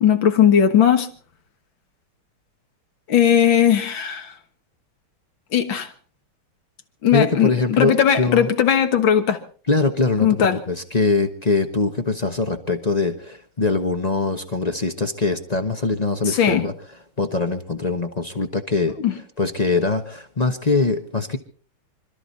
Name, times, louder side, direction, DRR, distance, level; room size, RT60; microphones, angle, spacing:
voice 1, 0.0-1.1 3.1-4.3 5.5-5.9 7.0-9.4 10.2-10.6 16.3-16.6 19.0-19.1, left 9 dB, 60° left, 2.1 m, -18 dB
voice 2, 7.1-8.5 9.7-16.7 17.2-19.0 19.4-21.4, left 3 dB, 30° left, 0.7 m, -22 dB
26.0 x 13.0 x 4.0 m
omnidirectional pair, 2.4 m